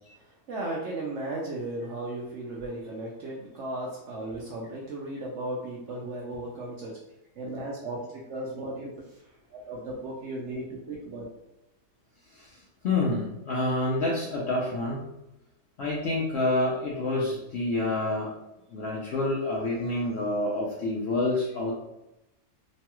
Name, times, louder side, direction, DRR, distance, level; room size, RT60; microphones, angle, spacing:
voice 1, 0.1-6.9 7.4-9.2 9.5-11.3, right 1 dB, 70° right, -3 dB, 0.7 m, -36 dB
voice 2, 12.8-15.1 15.8-18.3 18.7-21.7, left 2 dB, 70° left, -4 dB, 0.6 m, -28 dB
3.0 x 2.3 x 2.9 m, 0.90 s
omnidirectional pair, 1.6 m